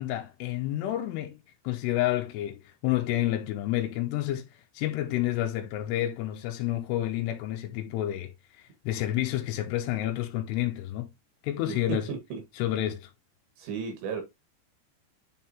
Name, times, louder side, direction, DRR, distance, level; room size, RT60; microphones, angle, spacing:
voice 1, 0.0-1.4 1.6-4.5 4.7-11.1 11.4-12.1 12.6-13.1, left 14 dB, 80° left, 2.7 m, -29 dB
voice 2, 11.7-12.4 13.6-14.2, right 6 dB, 85° right, 4.0 m, -34 dB
9.3 x 3.8 x 2.9 m
omnidirectional pair, 4.9 m